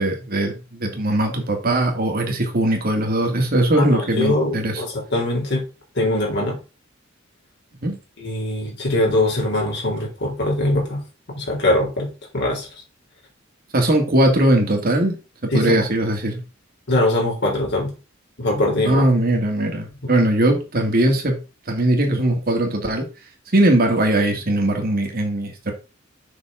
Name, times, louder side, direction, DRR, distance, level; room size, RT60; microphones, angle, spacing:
voice 1, 0.0-4.8 7.8-7.9 13.7-15.2 15.4-16.4 18.8-21.4 21.7-23.1 23.5-25.7, right 1 dB, 50° right, 3 dB, 2.2 m, -20 dB
voice 2, 3.7-5.6 6.0-6.6 8.2-11.0 11.3-12.1 12.3-12.7 15.5-15.8 16.9-17.9 18.4-19.0 20.0-20.1, left 1 dB, 60° left, -1 dB, 3.8 m, -22 dB
7.2 x 6.1 x 3.7 m, 0.30 s
head